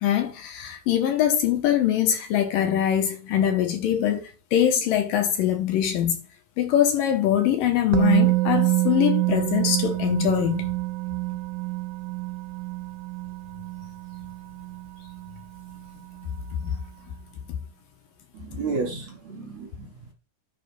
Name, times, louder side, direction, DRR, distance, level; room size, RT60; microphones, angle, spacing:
voice 1, 0.0-6.2 6.6-10.7 16.5-16.8 17.5-17.6, left 10 dB, 70° left, 2.4 m, -23 dB
Musical instrument, 7.9-15.8 16.1-16.3, right 21 dB, 85° right, 2.6 m, -26 dB
voice 2, 18.3-20.1, right 4 dB, 60° right, 2.0 m, -32 dB
10.5 x 3.7 x 6.0 m
omnidirectional pair, 4.6 m